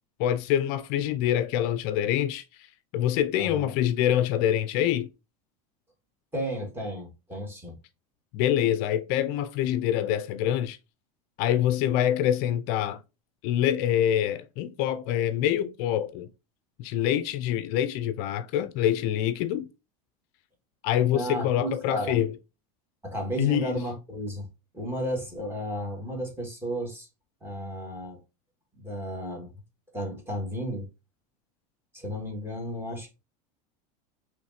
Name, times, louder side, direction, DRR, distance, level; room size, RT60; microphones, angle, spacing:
voice 1, 0.2-2.7 2.9-5.1 8.3-10.8 11.4-13.0 13.4-16.3 16.8-19.7 20.8-22.3 23.4-23.8, left 11 dB, 55° left, 0.4 m, -25 dB
voice 2, 3.4-3.7 6.3-7.7 21.1-22.2 23.0-24.5 24.7-27.1 27.4-28.2 28.8-29.5 29.9-30.9 31.9-33.1, equal, 10° right, 1.6 m, -33 dB
4.8 x 3.1 x 2.7 m
supercardioid pair, 135°, 19 cm